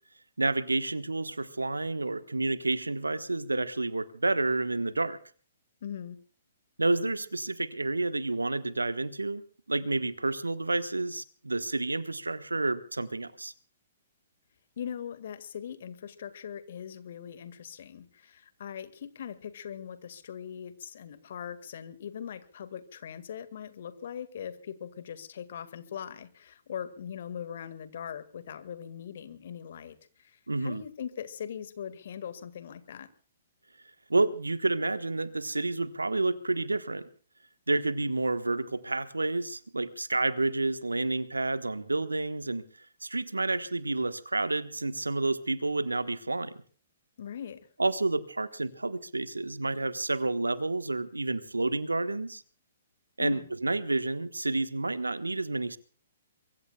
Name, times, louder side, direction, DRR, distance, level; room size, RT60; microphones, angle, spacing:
voice 1, 0.4-5.2 6.8-9.4 9.7-13.5 30.5-30.8 34.1-37.1 37.7-42.6 43.0-46.5 47.8-52.4 53.2-55.8, right 2 dB, 80° right, 13 dB, 1.3 m, -29 dB
voice 2, 5.8-6.2 14.8-33.1 47.2-47.6 53.2-53.5, left 8 dB, 55° left, 12 dB, 1.9 m, -41 dB
23.5 x 23.5 x 2.3 m, 0.43 s
figure-of-eight pair, 120°, 0 cm